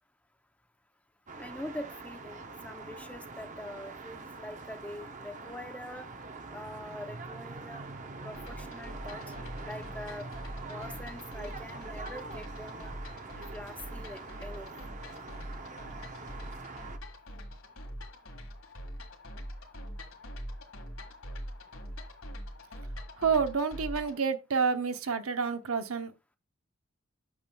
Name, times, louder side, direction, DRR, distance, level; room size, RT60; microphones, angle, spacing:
sound 1, 1.3-17.0, right 3 dB, 35° right, 0.6 m, -44 dB
voice 1, 1.4-6.1 6.5-7.8 8.2-9.2 9.6-10.3 10.7-12.9 13.5-14.7, left 1 dB, 5° left, 0.6 m, -44 dB
sound 2, 8.3-24.2, equal, 70° left, 1.8 m, -44 dB
voice 2, 23.2-26.1, right 5 dB, 85° right, 0.9 m, -29 dB
8.4 x 7.0 x 2.3 m
head